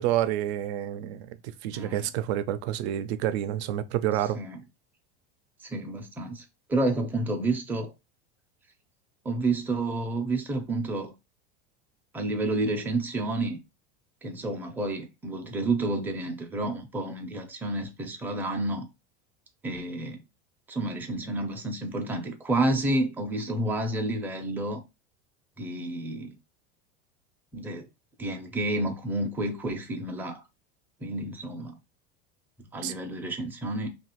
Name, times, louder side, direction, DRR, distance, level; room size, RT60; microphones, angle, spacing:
voice 1, 0.0-1.4 1.6-4.4 32.8-32.9, right 12 dB, 80° right, 0.5 m, -28 dB
voice 2, 1.7-2.1 4.2-4.6 5.6-7.9 9.2-11.1 12.1-13.6 14.2-18.8 19.6-20.2 20.7-24.8 25.6-26.4 27.5-27.9 28.2-30.4 31.0-31.8 32.6-33.9, right 2 dB, 5° right, 0.4 m, -30 dB
2.7 x 2.4 x 2.9 m
supercardioid pair, 130°, 32 cm